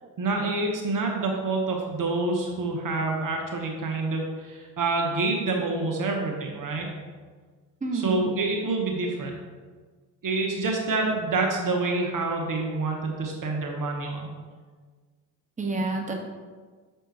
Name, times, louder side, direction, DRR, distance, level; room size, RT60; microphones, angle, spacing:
voice 1, 0.2-6.9 7.9-9.3 10.2-14.3, right 3 dB, 40° right, 1 dB, 1.0 m, -27 dB
voice 2, 7.8-8.3 15.6-16.1, right 3 dB, 15° right, 1 dB, 1.1 m, -29 dB
6.2 x 5.4 x 2.8 m, 1.5 s
hypercardioid pair, 45°, 48 cm